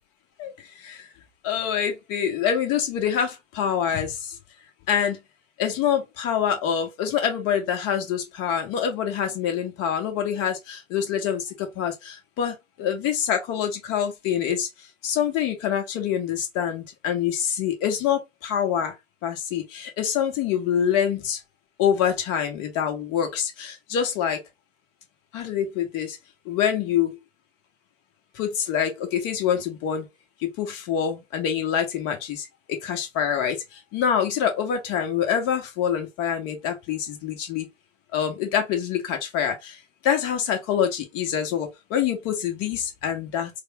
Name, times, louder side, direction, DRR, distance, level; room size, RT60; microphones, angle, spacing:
voice 1, 1.4-4.2 4.9-5.2 5.6-14.7 15.0-18.9 19.2-21.4 21.8-24.4 25.3-26.2 26.4-27.2 28.3-30.0 30.4-32.5 32.8-37.7 38.1-39.8 40.0-43.5, left 8 dB, 35° left, 1.4 m, -26 dB
3.9 x 2.3 x 3.6 m
hypercardioid pair, 105°, 38 cm